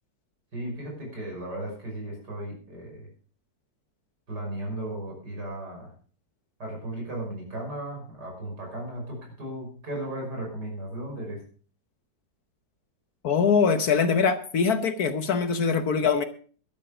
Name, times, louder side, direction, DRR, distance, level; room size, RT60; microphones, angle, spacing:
voice 1, 0.5-3.1 4.3-5.9 6.6-11.4, right 1 dB, 65° right, 0 dB, 6.4 m, -35 dB
voice 2, 13.2-16.2, left 5 dB, 60° left, 10 dB, 1.4 m, -23 dB
12.0 x 12.0 x 5.1 m, 0.43 s
omnidirectional pair, 2.0 m